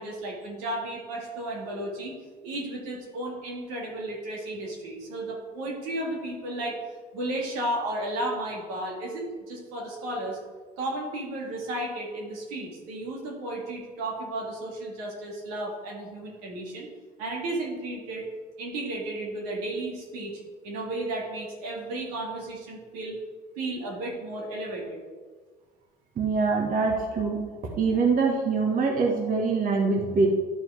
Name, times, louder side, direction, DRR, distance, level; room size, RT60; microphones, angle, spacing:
voice 1, 0.0-2.1 2.4-6.8 7.1-10.4 10.8-16.9 17.2-18.3 18.6-23.2 23.6-25.0, right 1 dB, 90° right, -2 dB, 2.0 m, -33 dB
voice 2, 26.1-27.5 27.8-30.3, right 4 dB, 50° right, 0 dB, 1.4 m, -24 dB
11.5 x 3.8 x 4.7 m, 1.5 s
supercardioid pair, 90°, 19 cm